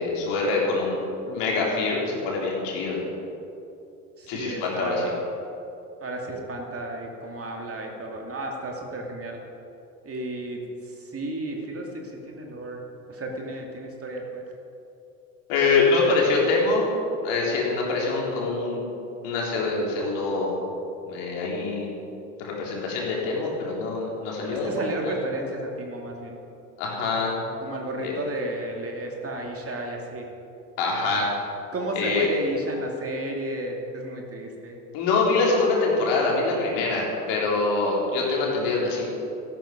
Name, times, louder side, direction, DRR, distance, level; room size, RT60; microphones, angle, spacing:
voice 1, 0.0-3.0 4.3-5.0 15.5-16.9 17.2-18.8 19.2-20.5 21.1-21.9 22.4-24.7 25.0-25.1 26.8-27.4 28.0-28.1 30.8-31.3 32.0-32.3 34.9-39.0, left 3 dB, 60° left, -3 dB, 3.9 m, -24 dB
voice 2, 4.2-5.2 6.0-9.4 10.0-10.6 11.1-11.9 12.3-12.8 13.1-14.4 24.5-26.4 27.6-30.3 31.7-34.8, right 1 dB, 30° right, 1 dB, 2.6 m, -32 dB
13.5 x 12.0 x 5.2 m, 2.8 s
hypercardioid pair, 70°, 46 cm